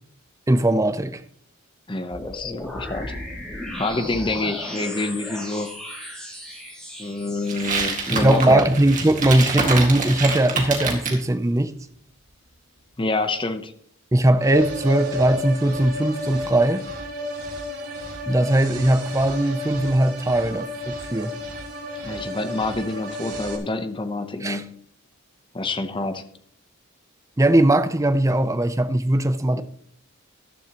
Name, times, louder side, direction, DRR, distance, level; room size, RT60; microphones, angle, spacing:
voice 1, 0.5-1.2 8.1-11.7 14.1-16.8 18.3-21.3 24.4-24.7 27.4-29.6, right 1 dB, 15° right, 0.5 m, -19 dB
voice 2, 1.9-3.1 3.8-5.8 7.0-8.7 13.0-13.7 22.0-24.7 25.5-26.2 29.5-29.6, left 2 dB, 20° left, 0.8 m, -27 dB
sound 1, 2.1-8.1, left 1 dB, 5° left, 3.1 m, -35 dB
sound 2, 7.5-11.2, right 4 dB, 35° right, 2.0 m, -26 dB
sound 3, 14.4-23.6, left 1 dB, 85° right, 2.8 m, -32 dB
13.5 x 11.5 x 3.0 m
head